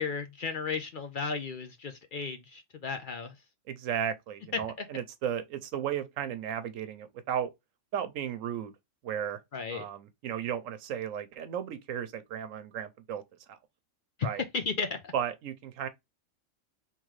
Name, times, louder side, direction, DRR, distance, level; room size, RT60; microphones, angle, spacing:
voice 1, 0.0-3.3 4.5-4.9 9.5-9.8 14.5-15.1, left 5 dB, 55° left, 0.6 m, -34 dB
voice 2, 3.7-7.5 7.9-8.7 9.0-9.4 9.7-13.2 13.5-13.6 14.2-14.4 15.1-15.9, right 9 dB, 90° right, 1.1 m, -34 dB
3.7 x 3.0 x 3.0 m
omnidirectional pair, 1.3 m